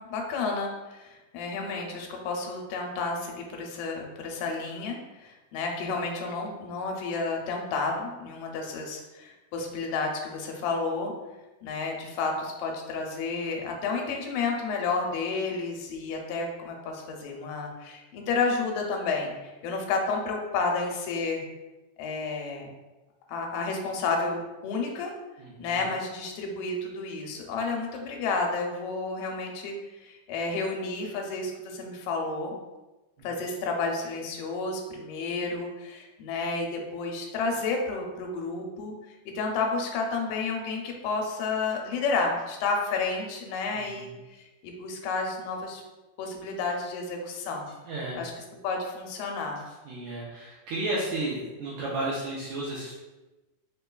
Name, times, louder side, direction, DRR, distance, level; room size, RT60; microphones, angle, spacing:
voice 1, 0.0-5.0 5.2-11.1 11.6-21.4 22.0-22.7 23.3-25.1 25.6-32.5 33.2-38.9 39.4-44.1 44.6-45.8 46.2-47.7 48.2-48.3 48.6-49.6, left 4 dB, 85° left, 1 dB, 2.2 m, -31 dB
voice 2, 25.4-25.7 33.2-33.3 43.7-44.1 47.8-48.2 49.8-52.9, right 2 dB, 80° right, -7 dB, 1.7 m, -33 dB
5.2 x 2.2 x 2.2 m, 1.1 s
omnidirectional pair, 3.8 m